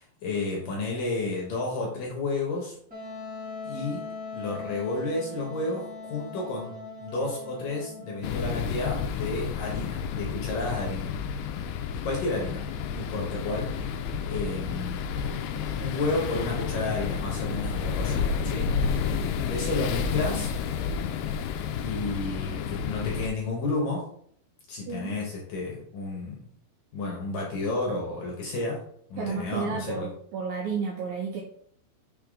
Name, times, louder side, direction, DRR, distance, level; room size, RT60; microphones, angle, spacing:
voice 1, 0.0-2.8 3.6-4.0 4.3-11.1 12.0-12.6 12.9-13.7 14.2-15.4 15.8-19.1 19.5-20.5 21.7-24.0 24.7-26.4 26.9-28.8 29.1-30.1, left 2 dB, 65° left, -2 dB, 2.5 m, -31 dB
Wind instrument woodwind instrument, 2.9-8.5, left 3 dB, 5° right, 1.8 m, -40 dB
sound 1, 8.2-23.3, left 6 dB, 85° left, 2.3 m, -30 dB
voice 2, 24.8-25.2 29.2-31.4, right 5 dB, 75° right, 0 dB, 2.1 m, -32 dB
6.8 x 5.9 x 3.7 m, 0.64 s
omnidirectional pair, 5.3 m